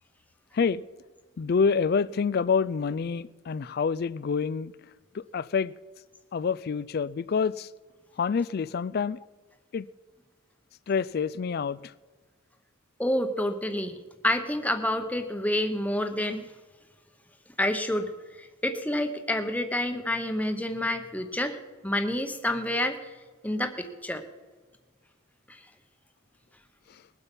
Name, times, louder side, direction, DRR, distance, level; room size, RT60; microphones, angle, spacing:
voice 1, 1.4-4.7 5.1-5.7 6.3-7.7 8.2-9.2 9.7-9.9 10.9-11.9, left 5 dB, 45° left, 0.3 m, -27 dB
voice 2, 13.0-14.0 14.2-16.5 17.6-18.1 18.4-23.1 23.4-24.2 25.5-25.6, left 1 dB, 5° left, 0.9 m, -28 dB
20.5 x 8.1 x 5.4 m
head